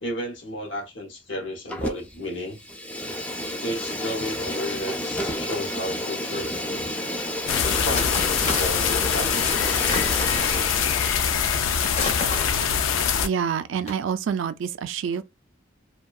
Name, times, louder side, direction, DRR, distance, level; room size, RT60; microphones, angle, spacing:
voice 1, 0.0-2.6 3.6-6.6 7.6-9.9, left 1 dB, 70° left, 0.8 m, -33 dB
Fire, 1.7-2.2 2.5-11.3, left 1 dB, 5° left, 0.3 m, -31 dB
sound 1, 6.8-6.9 7.8-9.0 9.8-10.8 11.8-13.1 13.7-13.9, left 3 dB, 35° left, 0.7 m, -32 dB
sound 2, 7.5-13.3, left 7 dB, 90° left, 0.4 m, -23 dB
voice 2, 13.2-15.2, right 7 dB, 75° right, 0.3 m, -27 dB
2.6 x 2.2 x 2.3 m
head